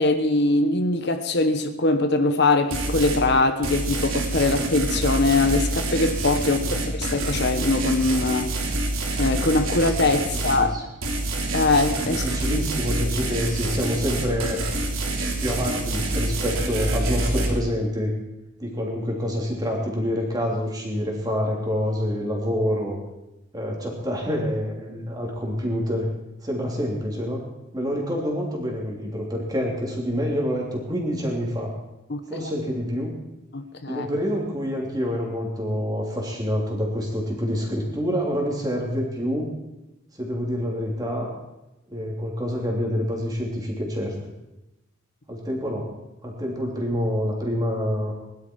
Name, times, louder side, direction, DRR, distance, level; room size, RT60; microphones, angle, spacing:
voice 1, 0.0-8.5 9.2-10.8 11.5-12.6 32.1-32.5 33.5-34.1, left 2 dB, 55° left, 1.0 m, -22 dB
sound 1, 2.7-3.2 3.6-10.6 11.0-17.5, right 2 dB, 80° right, 3.2 m, -27 dB
voice 2, 10.5-10.8 12.0-14.6 15.4-18.1 18.6-23.0 23.5-26.1 26.4-27.4 27.7-31.7 32.3-33.2 33.9-39.5 40.2-41.4 41.9-44.1 45.3-46.0 46.2-48.1, equal, 20° right, 3.3 m, -27 dB
21.0 x 12.0 x 4.7 m
head